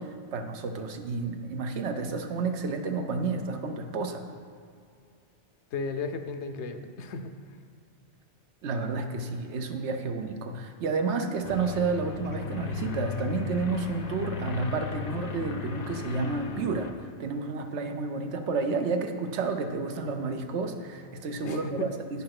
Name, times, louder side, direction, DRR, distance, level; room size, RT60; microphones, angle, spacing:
voice 1, 0.0-4.2 8.6-16.9 17.2-22.2, right 4 dB, 80° right, 6 dB, 1.0 m, -31 dB
voice 2, 5.7-7.3 21.4-21.9, left 4 dB, 80° left, 8 dB, 0.9 m, -34 dB
sound 1, 11.4-16.9, left 7 dB, 45° left, 0.6 m, -36 dB
8.7 x 5.6 x 5.9 m, 2.3 s
omnidirectional pair, 1.1 m